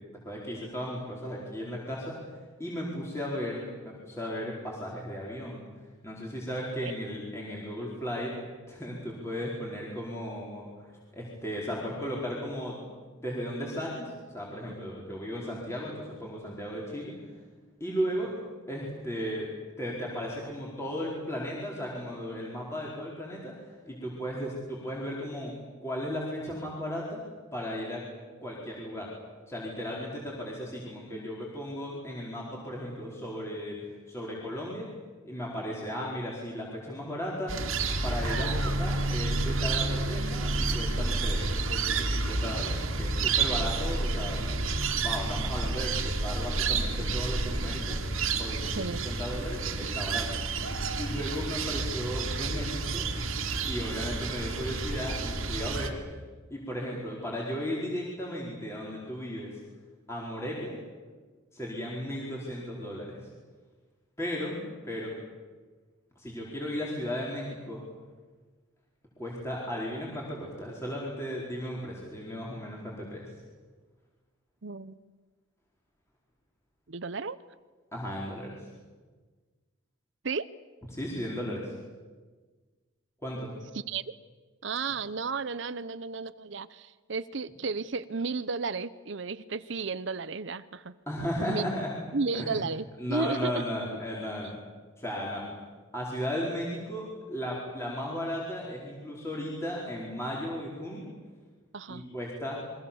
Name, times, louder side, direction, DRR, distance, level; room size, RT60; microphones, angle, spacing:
voice 1, 0.1-5.6 6.0-8.3 8.7-10.9 11.1-12.8 13.1-17.1 17.8-18.3 18.7-19.5 19.8-25.5 25.8-27.2 27.5-28.0 28.4-29.1 29.5-34.9 35.2-37.5 38.0-44.4 44.9-48.0 48.4-50.3 51.0-53.1 53.7-56.0 56.5-59.6 60.1-60.8 61.5-63.2 64.2-65.1 66.2-67.8 69.2-73.3 77.9-78.7 80.9-81.7 83.2-83.5 91.1-91.9 92.3-92.6 93.0-94.6 95.0-95.4 95.9-101.1 101.9-102.6, equal, 15° left, -4 dB, 4.8 m, -35 dB
sound 1, 37.5-55.9, right 3 dB, 80° right, 2.4 m, -30 dB
voice 2, 48.8-49.1 74.6-75.0 76.9-77.4 80.2-80.5 83.7-84.0 84.6-90.9 91.4-91.6 92.1-93.6 101.7-102.0, right 4 dB, 60° right, 14 dB, 0.8 m, -33 dB
29.0 x 23.5 x 7.2 m, 1.4 s
head